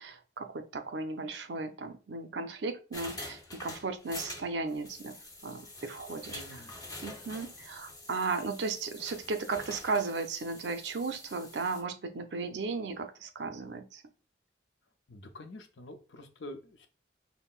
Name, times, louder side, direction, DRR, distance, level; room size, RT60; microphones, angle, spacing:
voice 1, 0.0-5.2 5.4-6.4 7.0-14.0, right 4 dB, 70° right, 7 dB, 0.5 m, -35 dB
sound 1, 2.9-11.8, left 2 dB, 20° left, 0.6 m, -46 dB
voice 2, 6.3-6.7 15.1-16.9, left 1 dB, 75° left, 6 dB, 0.6 m, -47 dB
5.5 x 2.1 x 2.4 m, 0.35 s
head